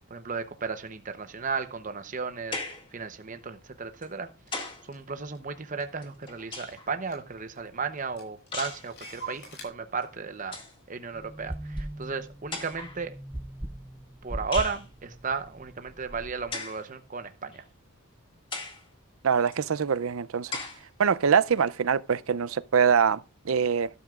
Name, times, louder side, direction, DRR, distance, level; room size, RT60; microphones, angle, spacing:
voice 1, 0.1-4.3 4.5-10.6 10.9-13.1 14.2-17.6, right 5 dB, 35° right, 0.8 m, -34 dB
sound 1, 2.5-2.9 4.0-4.9 6.0-6.9 8.5-8.9 10.0-10.1 10.4-10.8 11.8-11.9 12.5-13.0 14.5-14.8 16.5-16.8 17.5-17.6 18.5-18.9 19.5-19.6 20.5-20.8, left 3 dB, 25° left, 2.0 m, -37 dB
Clock, 4.5-4.6 4.9-6.4 6.7-6.8 7.0-7.7 8.0-9.6, right 3 dB, 50° left, 6.1 m, -45 dB
sound 2, 11.1-16.6, right 1 dB, 10° right, 0.5 m, -40 dB
voice 2, 19.2-20.6 21.0-23.9, right 7 dB, 70° right, 0.5 m, -24 dB
12.5 x 12.5 x 2.4 m
head